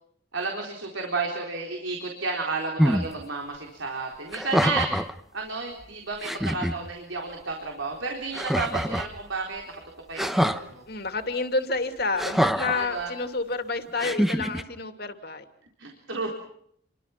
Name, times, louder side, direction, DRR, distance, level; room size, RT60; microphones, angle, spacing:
voice 1, 0.3-5.0 5.3-9.7 10.1-10.8 12.8-13.1 15.8-16.3, right 3 dB, 80° right, 1 dB, 4.1 m, -32 dB
sound 1, 2.8-3.1 4.3-5.1 5.8-5.9 6.2-6.7 8.3-9.1 10.2-10.6 12.2-12.8 14.0-14.6, equal, ahead, 1.0 m, -25 dB
voice 2, 10.9-15.4, left 3 dB, 50° left, 7 dB, 2.6 m, -29 dB
29.0 x 24.0 x 6.0 m, 0.69 s
head